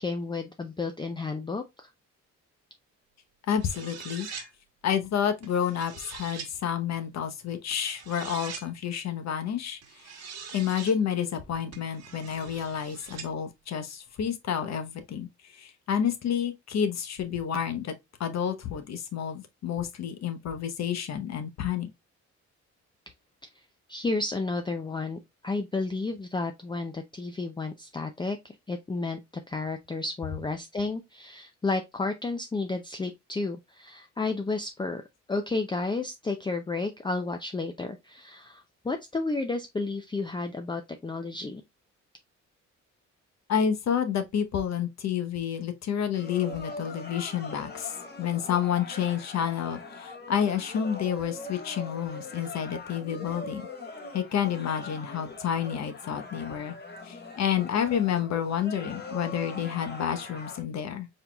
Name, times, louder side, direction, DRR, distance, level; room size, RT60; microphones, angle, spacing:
voice 1, 0.0-1.9 23.9-29.2 29.5-35.0 35.3-41.6, left 3 dB, 15° left, 0.5 m, -32 dB
voice 2, 3.5-4.5 4.8-15.3 15.5-17.9 18.2-21.9 43.5-47.9 48.2-53.6 54.1-56.7 57.0-61.1, left 8 dB, 60° left, 1.0 m, -29 dB
sound 1, 3.5-4.5 5.4-6.5 7.7-8.7 9.8-11.0 11.7-13.3, right 6 dB, 60° right, 1.2 m, -43 dB
sound 2, 46.1-60.6, left 3 dB, 35° left, 1.5 m, -42 dB
4.3 x 3.9 x 2.3 m
cardioid pair, 90°, 30 cm